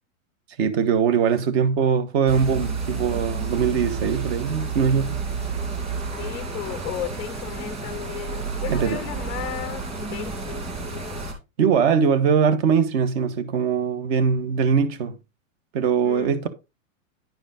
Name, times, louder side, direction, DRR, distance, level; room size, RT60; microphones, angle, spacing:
voice 1, 0.6-5.2 8.7-9.0 11.6-15.2 15.7-16.5, right 6 dB, 50° right, 1.3 m, -21 dB
sound 1, 2.3-11.3, right 4 dB, 15° right, 2.4 m, -30 dB
voice 2, 6.0-10.6 10.9-11.3 16.0-16.4, left 12 dB, 15° left, 0.4 m, -35 dB
10.5 x 5.0 x 3.7 m
supercardioid pair, 155°, 40 cm